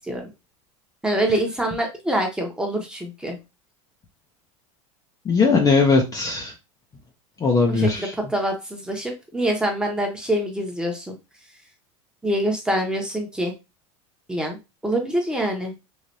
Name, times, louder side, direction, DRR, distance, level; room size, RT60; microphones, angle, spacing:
voice 1, 1.0-3.4 7.7-11.1 12.2-13.5 14.3-14.6 14.8-15.7, right 1 dB, 5° right, 2 dB, 0.9 m, -25 dB
voice 2, 5.2-6.5 7.4-8.1, left 4 dB, 25° left, 2 dB, 0.6 m, -19 dB
3.2 x 2.5 x 2.6 m, 0.25 s
supercardioid pair, 120°, 16 cm